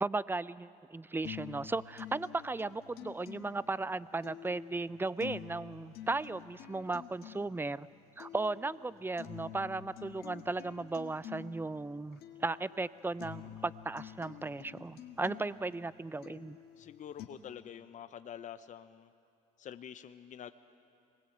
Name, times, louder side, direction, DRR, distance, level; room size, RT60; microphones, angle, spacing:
voice 1, 0.0-7.9 8.2-16.6, right 3 dB, 10° right, 18 dB, 0.6 m, -36 dB
sound 1, 1.2-17.2, left 10 dB, 65° left, 1.8 m, -49 dB
voice 2, 16.8-19.1 19.6-20.5, left 9 dB, 50° left, 11 dB, 0.9 m, -47 dB
26.0 x 20.5 x 8.0 m, 2.5 s
hypercardioid pair, 65°, 17 cm